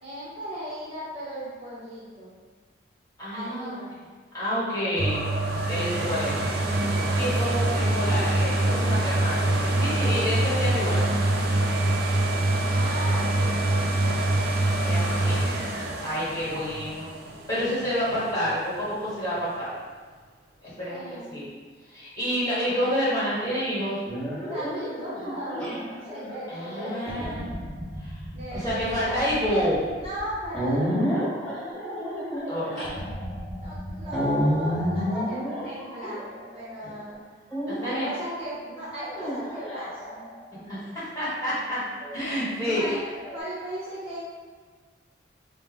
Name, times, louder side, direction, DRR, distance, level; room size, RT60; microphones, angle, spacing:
voice 1, 0.0-2.4 3.3-4.0 10.0-10.2 12.7-14.3 20.8-21.4 24.5-27.4 28.3-29.4 29.9-31.3 33.6-37.3 37.8-40.3 41.7-41.8 42.2-44.2, equal, 30° right, -8 dB, 0.9 m, -37 dB
voice 2, 3.2-3.8 4.3-5.2 5.7-6.3 7.1-11.0 14.8-15.4 16.0-17.1 17.5-19.7 20.6-21.5 21.9-24.0 26.5-27.5 28.0-28.2 28.5-29.8 32.5-32.8 36.8-36.9 37.7-38.1 40.6-41.8 42.1-43.0, equal, 20° left, -10 dB, 1.3 m, -28 dB
sound 1, 5.0-18.7 19.2-19.3, right 1 dB, 55° right, 0.5 m, -25 dB
sound 2, 24.1-36.7 37.5-38.1 39.0-40.5 42.0-43.4, equal, 5° left, 1.0 m, -31 dB
5.2 x 2.1 x 3.6 m, 1.5 s
head